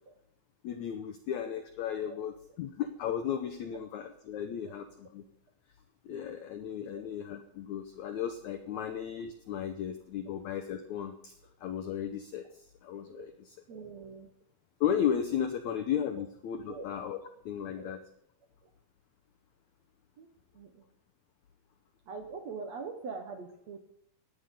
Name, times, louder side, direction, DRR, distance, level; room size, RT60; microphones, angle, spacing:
voice 1, 0.6-5.2 6.0-11.3 11.6-13.6 14.8-17.2 17.4-18.0, left 9 dB, 85° left, 7 dB, 1.6 m, -35 dB
voice 2, 13.7-14.3 15.7-15.8 16.1-16.2 16.7-16.9 17.8-17.9 18.6-18.7 20.2-20.3 20.5-20.9 22.1-23.8, right 4 dB, 60° right, 4 dB, 1.9 m, -43 dB
17.0 x 9.7 x 5.4 m, 0.72 s
omnidirectional pair, 4.5 m